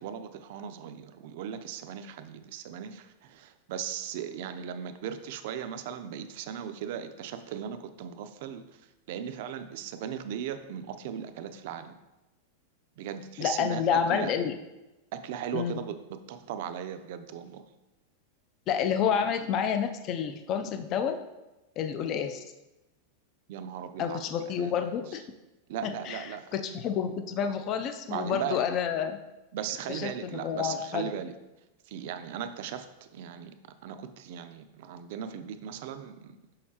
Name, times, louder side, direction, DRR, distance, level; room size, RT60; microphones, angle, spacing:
voice 1, 0.0-8.6 9.1-12.0 13.0-14.3 15.1-17.6 23.5-24.9 25.7-26.5 28.1-28.6 29.5-31.3 31.9-32.9 33.1-33.6 33.8-36.4, right 9 dB, 55° right, 10 dB, 0.5 m, -37 dB
voice 2, 13.4-14.5 15.5-15.8 18.7-21.2 21.8-22.4 24.0-25.2 25.8-29.2 29.9-31.1, left 7 dB, 30° left, 7 dB, 0.3 m, -29 dB
6.4 x 5.6 x 2.8 m, 1.0 s
supercardioid pair, 165°, 0 cm